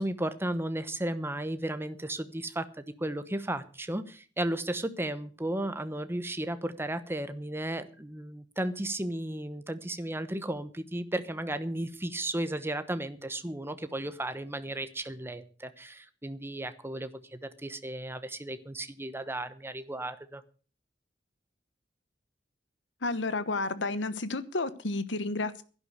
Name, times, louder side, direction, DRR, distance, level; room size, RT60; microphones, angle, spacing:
voice 1, 0.0-20.4, right 1 dB, 15° right, 11 dB, 1.0 m, -34 dB
voice 2, 23.0-25.6, left 3 dB, 70° left, 14 dB, 1.2 m, -31 dB
11.5 x 11.0 x 6.6 m, 0.39 s
head